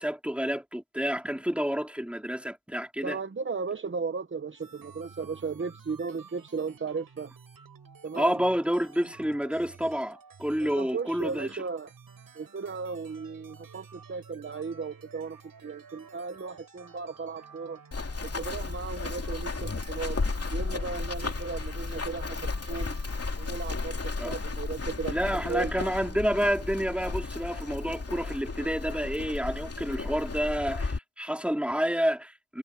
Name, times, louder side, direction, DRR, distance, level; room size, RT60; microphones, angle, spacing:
voice 1, 0.0-3.2 8.2-11.5 24.2-24.3 25.1-32.6, equal, 5° right, 3.9 m, -29 dB
voice 2, 3.0-7.3 8.0-8.4 10.6-11.9 12.3-17.8 18.2-20.2 20.5-23.0 23.4-25.8, right 5 dB, 35° right, 0.9 m, -36 dB
sound 1, 4.5-23.7, right 5 dB, 85° right, 5.9 m, -52 dB
Run, 17.9-31.0, left 3 dB, 45° left, 2.8 m, -34 dB
wide cardioid pair, 65°, 34 cm